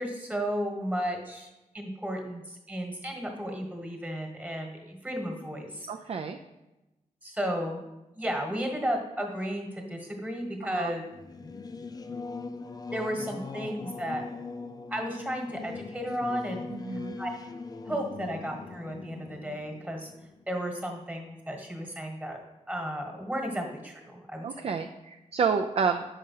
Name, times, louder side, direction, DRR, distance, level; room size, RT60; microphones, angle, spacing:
voice 1, 0.0-1.5 1.7-5.9 7.2-7.8 8.1-11.0 12.9-14.2 14.9-16.7 17.2-17.3 17.8-20.1 20.5-22.4 22.7-24.4, equal, 10° right, 3 dB, 1.3 m, -33 dB
voice 2, 5.9-6.4 10.6-10.9 16.7-17.2 24.4-26.1, right 6 dB, 50° right, 5 dB, 0.4 m, -29 dB
Singing / Musical instrument, 11.1-21.2, left 4 dB, 30° left, 0.4 m, -41 dB
5.5 x 4.9 x 5.5 m, 1.0 s
wide cardioid pair, 100°, 14 cm